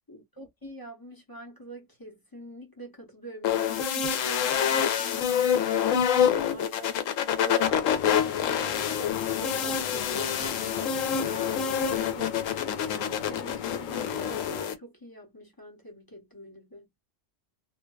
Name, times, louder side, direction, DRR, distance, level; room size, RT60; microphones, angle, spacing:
voice 1, 0.1-16.9, right 1 dB, 20° left, 0.7 m, -45 dB
sound 1, 3.4-14.7, left 8 dB, 85° left, 1.0 m, -26 dB
sound 2, 7.6-14.7, left 8 dB, 70° left, 0.4 m, -39 dB
2.5 x 2.2 x 2.2 m
omnidirectional pair, 1.3 m